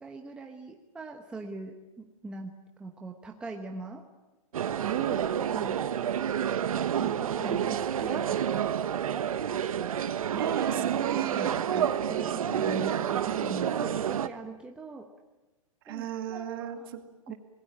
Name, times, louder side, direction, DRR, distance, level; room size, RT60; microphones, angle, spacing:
voice 1, 0.0-2.5 2.8-4.0 5.5-5.8 7.0-8.6 9.7-9.9 11.7-15.1 15.9-16.9 17.3-17.4, right 3 dB, 5° right, 2 dB, 1.0 m, -42 dB
sound 1, 4.5-14.3, right 9 dB, 80° right, 1.3 m, -29 dB
voice 2, 4.8-5.4 10.4-11.8 15.8-17.3, right 11 dB, 40° right, 7 dB, 2.3 m, -35 dB
25.5 x 20.5 x 8.8 m, 1.1 s
hypercardioid pair, 170°, 18 cm